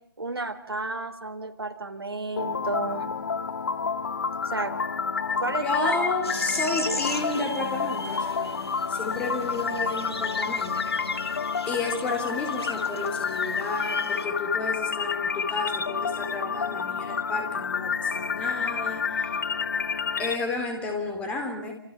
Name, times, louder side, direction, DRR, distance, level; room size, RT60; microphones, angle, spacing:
voice 1, 0.2-3.1 4.4-4.7 5.4-6.0, right 3 dB, 70° right, 6 dB, 3.9 m, -32 dB
sound 1, 2.4-20.4, left 5 dB, 50° left, 1.1 m, -29 dB
voice 2, 5.5-8.6 8.9-10.9 11.7-19.4 20.2-21.7, left 3 dB, 10° left, 4 dB, 3.4 m, -32 dB
sound 2, 6.2-14.3, left 1 dB, 80° left, 3.0 m, -38 dB
30.0 x 27.5 x 6.0 m, 0.74 s
figure-of-eight pair, 145°, 13 cm